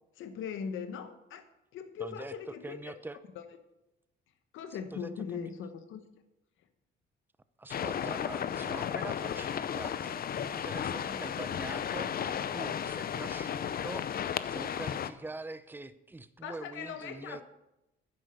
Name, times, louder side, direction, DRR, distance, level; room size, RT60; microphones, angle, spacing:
voice 1, 0.2-1.4 1.7-2.9 3.4-3.5 4.5-6.0 16.4-17.4, left 7 dB, 80° left, 9 dB, 1.1 m, -40 dB
voice 2, 2.0-3.2 4.9-5.5 7.6-17.4, right 2 dB, 10° right, 13 dB, 0.6 m, -44 dB
sound 1, 7.7-15.1, left 8 dB, 50° left, 0.6 m, -34 dB
10.0 x 7.9 x 6.5 m, 0.93 s
cardioid pair, 90°, 20 cm